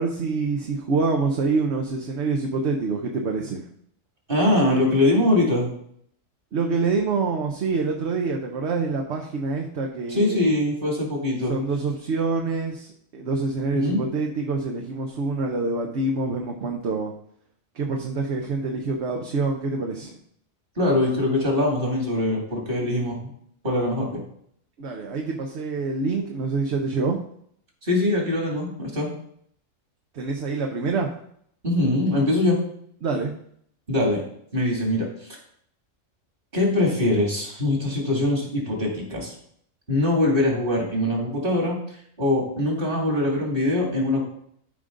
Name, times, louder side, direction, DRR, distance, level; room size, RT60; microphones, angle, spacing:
voice 1, 0.0-3.6 6.5-10.5 11.5-17.1 17.8-20.2 24.8-27.2 30.1-31.1 33.0-33.3, right 4 dB, 60° right, 2 dB, 1.1 m, -26 dB
voice 2, 4.3-5.7 10.1-11.6 13.7-14.0 20.8-23.2 23.6-24.2 27.8-29.1 31.6-32.6 33.9-34.2 34.5-35.4 36.5-39.3 39.9-41.8 42.2-44.2, left 1 dB, 40° right, -1 dB, 2.6 m, -22 dB
12.5 x 5.1 x 3.8 m, 0.67 s
omnidirectional pair, 1.4 m